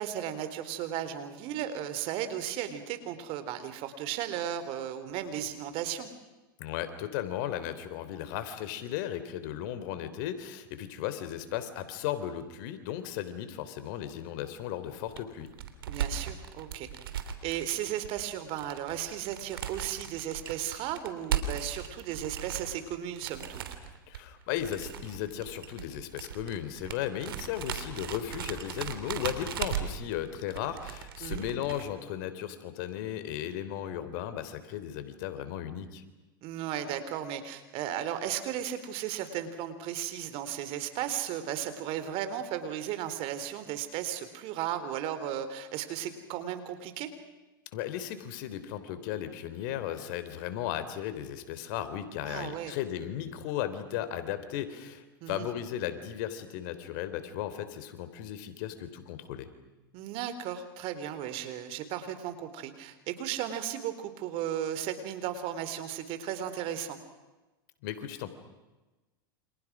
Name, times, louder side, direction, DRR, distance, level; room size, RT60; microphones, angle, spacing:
voice 1, 0.0-6.1 15.9-16.9 17.4-23.6 31.2-31.5 36.4-47.1 52.2-52.7 55.2-55.5 59.9-67.0, right 10 dB, 50° right, 11 dB, 3.8 m, -35 dB
voice 2, 6.6-15.5 24.1-36.0 47.7-59.5 67.8-68.3, left 11 dB, 60° left, 11 dB, 3.5 m, -36 dB
sound 1, 14.9-31.8, right 8 dB, 85° right, 3.2 m, -37 dB
29.5 x 27.5 x 6.2 m, 1.1 s
hypercardioid pair, 105°, 12 cm